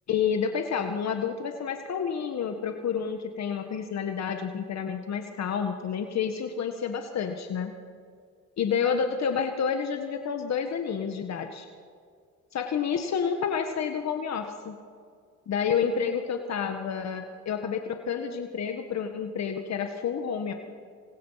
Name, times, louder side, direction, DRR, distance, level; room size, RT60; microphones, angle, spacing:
voice 1, 0.1-7.7 8.6-11.7 12.5-14.8 15.5-20.5, left 7 dB, 60° left, 5 dB, 1.7 m, -29 dB
28.0 x 25.5 x 5.8 m, 2.1 s
cardioid pair, 90°, 30 cm